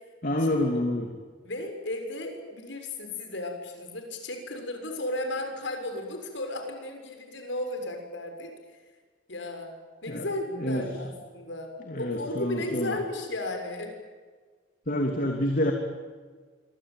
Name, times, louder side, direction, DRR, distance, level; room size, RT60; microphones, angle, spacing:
voice 1, 0.2-1.1 10.1-10.2 10.6-10.8 11.9-13.0 14.9-15.7, left 1 dB, 50° left, 3 dB, 3.0 m, -27 dB
voice 2, 1.4-8.5 9.3-9.7 10.0-11.7 12.0-13.9, left 1 dB, 70° left, 5 dB, 6.8 m, -34 dB
27.0 x 24.0 x 9.3 m, 1.5 s
head